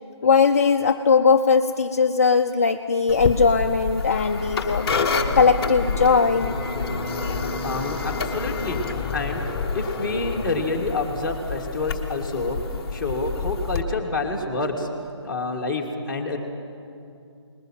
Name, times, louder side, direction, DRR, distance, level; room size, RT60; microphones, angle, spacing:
voice 1, 0.2-6.5, left 5 dB, 30° left, 4 dB, 0.6 m, -19 dB
sound 1, 3.1-13.8, left 5 dB, 15° left, 1.1 m, -28 dB
Bowed string instrument, 4.3-8.7, right 2 dB, 80° right, 2.6 m, -38 dB
voice 2, 7.6-8.8 9.1-9.5 9.7-12.6 12.9-14.9 15.2-16.4, left 3 dB, ahead, -5 dB, 1.9 m, -28 dB
21.0 x 20.5 x 7.5 m, 2.5 s
figure-of-eight pair, 165°, 15 cm